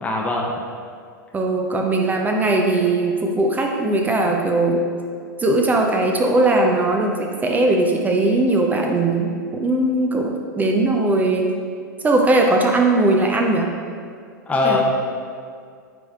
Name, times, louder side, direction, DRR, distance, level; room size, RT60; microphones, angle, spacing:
voice 1, 0.0-0.6 14.5-14.8, left 3 dB, 10° left, -1 dB, 0.8 m, -21 dB
voice 2, 1.3-4.8 5.4-9.3 9.6-11.5 12.0-13.7 14.6-14.8, right 2 dB, 15° right, 2 dB, 0.5 m, -19 dB
9.7 x 3.3 x 3.5 m, 2.2 s
figure-of-eight pair, 95°, 11 cm